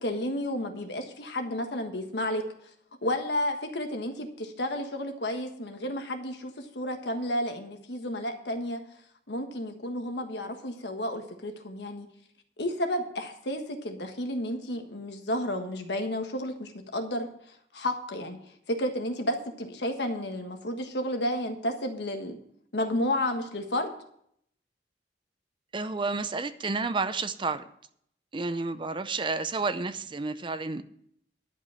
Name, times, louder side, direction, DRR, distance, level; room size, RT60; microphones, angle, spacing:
voice 1, 0.0-2.4 3.0-8.8 9.3-12.1 12.6-17.3 17.7-18.4 18.7-22.4 22.7-23.9, left 1 dB, 75° left, 5 dB, 1.4 m, -31 dB
voice 2, 25.7-27.7 28.3-30.8, right 3 dB, 30° right, 12 dB, 0.5 m, -30 dB
11.5 x 5.3 x 8.2 m, 0.70 s
head